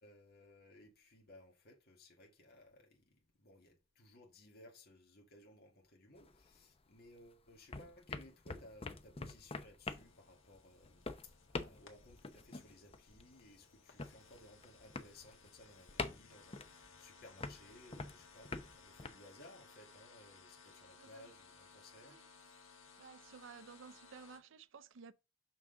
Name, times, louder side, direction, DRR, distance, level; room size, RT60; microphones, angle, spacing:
voice 1, 0.0-22.7, left 1 dB, 50° left, 1.7 m, -60 dB
sound 1, 6.2-7.3 7.5-19.1, left 3 dB, 30° left, 0.7 m, -46 dB
sound 2, 9.9-24.4, left 5 dB, 75° left, 1.8 m, -62 dB
voice 2, 21.0-21.3 22.0-22.3 23.0-25.1, right 5 dB, 70° right, 0.5 m, -55 dB
6.4 x 6.1 x 3.8 m
head